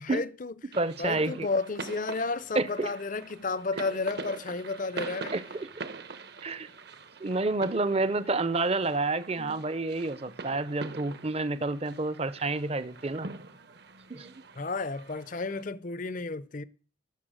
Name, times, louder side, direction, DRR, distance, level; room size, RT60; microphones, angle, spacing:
voice 1, 0.0-0.5 1.0-5.4 9.4-9.6 14.6-16.6, left 3 dB, 40° left, 0.6 m, -32 dB
voice 2, 0.7-1.5 2.5-2.9 5.3-5.4 6.4-6.7 7.2-13.3 14.1-14.3, right 3 dB, 30° right, 0.6 m, -29 dB
sound 1, 0.7-15.6, right 4 dB, 50° right, 1.0 m, -44 dB
17.5 x 7.0 x 6.4 m
head